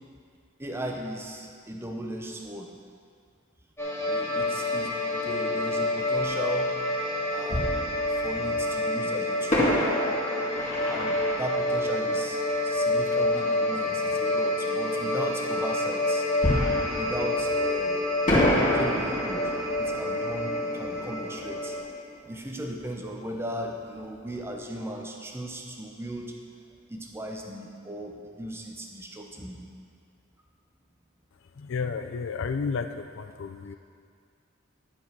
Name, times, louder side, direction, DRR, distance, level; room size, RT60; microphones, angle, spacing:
voice 1, 0.6-2.7 4.1-6.8 7.3-7.7 8.1-9.7 10.9-16.3 16.9-18.1 18.4-19.5 19.8-21.8 22.3-26.3 26.9-29.6, right 1 dB, 10° right, 1 dB, 0.8 m, -37 dB
sound 1, 3.8-21.8, left 1 dB, 15° left, 1.7 m, -28 dB
Fireworks, 6.2-6.3 7.5-8.6 9.5-13.0 16.4-17.9 18.3-22.8 23.1-23.2 23.7-23.9, left 1 dB, 35° left, 2.1 m, -29 dB
voice 2, 31.6-33.7, left 5 dB, 60° left, 8 dB, 0.4 m, -32 dB
11.5 x 5.2 x 6.0 m, 2.2 s
head